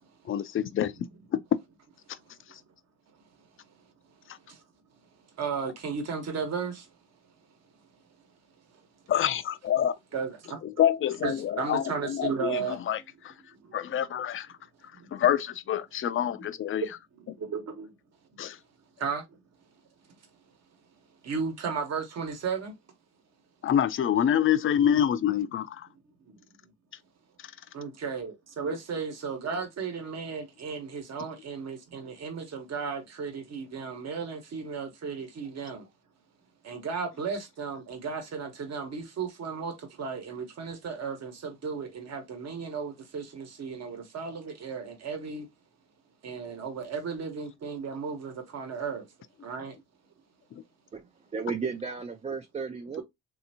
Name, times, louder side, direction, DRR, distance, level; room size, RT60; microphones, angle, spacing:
voice 1, 0.3-0.9 1.3-1.4 2.5-2.6 9.1-9.9 10.6-13.3 13.7-14.5 15.1-16.8 18.4-18.6 23.6-25.9, left 10 dB, 45° left, 0.4 m, -26 dB
voice 2, 5.4-6.9 10.1-10.6 11.2-12.8 13.6-13.8 15.0-15.1 16.3-16.4 16.8-16.9 17.3-17.9 19.0-19.2 21.2-22.7 26.2-26.3 27.7-35.9 36.6-45.5 46.2-49.1 49.4-49.7 53.0-53.1, right 5 dB, 60° right, 1.2 m, -34 dB
voice 3, 51.3-53.0, right 5 dB, 20° right, 0.4 m, -34 dB
3.4 x 2.7 x 2.7 m
cardioid pair, 90°, 30 cm